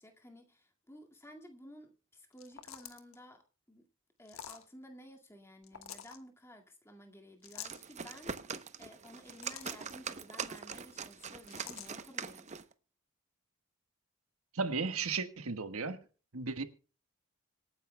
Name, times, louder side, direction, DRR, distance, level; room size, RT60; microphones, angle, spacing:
voice 1, 0.0-3.9 4.2-12.5, equal, 10° left, 2.0 m, -54 dB
sound 1, 2.3-3.2 4.2-4.6 5.6-6.2 7.4-7.8 9.1-9.9 11.5-11.9, left 9 dB, 75° left, 1.5 m, -47 dB
sound 2, 7.4-12.7, right 6 dB, 30° right, 0.8 m, -43 dB
voice 2, 14.5-16.0 16.3-16.6, right 4 dB, 80° right, 1.4 m, -34 dB
26.0 x 9.8 x 2.2 m
head